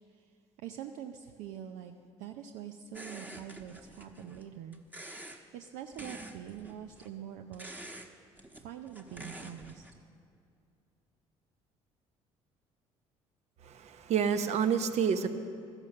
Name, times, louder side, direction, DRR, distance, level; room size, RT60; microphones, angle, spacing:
voice 1, 0.6-1.9 2.2-4.8 5.2-7.7 8.5-9.8, right 10 dB, 75° right, 5 dB, 0.6 m, -44 dB
sound 1, 2.9-4.5 4.7-5.4 5.9-7.1 7.5-8.1 8.4-10.0, right 1 dB, 15° right, 1.1 m, -47 dB
voice 2, 13.6-15.3, right 7 dB, 60° right, 9 dB, 0.9 m, -28 dB
13.5 x 11.0 x 6.6 m, 2.4 s
supercardioid pair, 75°, 13 cm